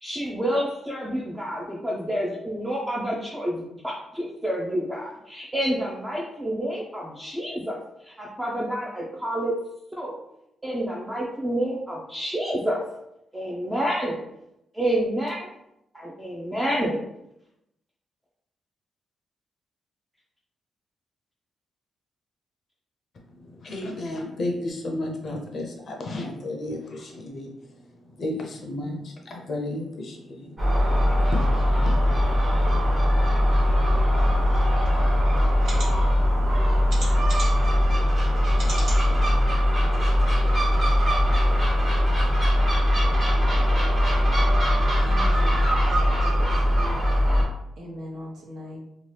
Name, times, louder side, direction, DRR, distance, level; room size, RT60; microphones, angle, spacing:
voice 1, 0.0-7.8 8.0-9.5 9.9-10.2 10.6-12.8 13.3-14.2 14.7-15.5 15.9-17.0, equal, 10° right, -4 dB, 0.4 m, -28 dB
voice 2, 23.4-27.5 28.1-30.8 31.3-31.5, left 1 dB, 45° left, 1 dB, 0.5 m, -32 dB
Gull seagull, 30.6-47.4, equal, 30° right, 0.9 m, -20 dB
sound 1, 34.8-34.9 35.6-35.9 36.9-37.7 38.5-39.0 39.6-39.7 40.0-40.1, right 2 dB, 85° right, 1.2 m, -35 dB
voice 3, 45.0-46.9 47.8-48.8, left 1 dB, 70° right, -3 dB, 0.9 m, -40 dB
2.8 x 2.2 x 3.2 m, 0.83 s
cardioid pair, 135°, 0 cm